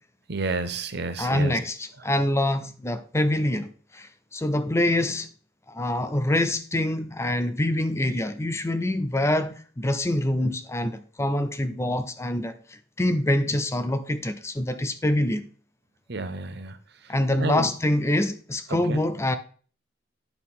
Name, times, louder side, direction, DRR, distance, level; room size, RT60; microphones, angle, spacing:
voice 1, 0.3-1.6 16.1-16.8 17.0-17.7 18.7-19.0, right 3 dB, 60° right, 0.8 m, -31 dB
voice 2, 1.2-5.3 5.7-15.5 17.1-19.4, left 1 dB, 15° left, 0.5 m, -25 dB
9.3 x 6.3 x 3.7 m
head